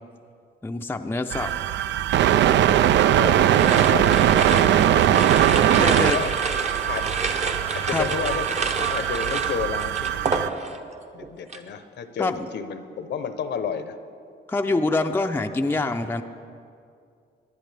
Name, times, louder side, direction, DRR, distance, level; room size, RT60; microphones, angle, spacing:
voice 1, 0.6-1.5 5.8-6.2 7.9-8.1 12.2-12.5 14.5-16.2, left 2 dB, 10° left, 5 dB, 0.5 m, -25 dB
sound 1, 1.3-10.5, right 11 dB, 65° right, 0.4 m, -20 dB
voice 2, 3.1-5.7 6.0-6.3 6.9-7.1 7.7-8.5 8.8-10.3 11.1-14.0, left 7 dB, 60° left, 10 dB, 0.8 m, -32 dB
sound 2, 3.5-10.9 11.2-11.7, right 3 dB, 35° right, 0.9 m, -29 dB
19.5 x 11.0 x 3.4 m, 2.4 s
cardioid pair, 90°, 20 cm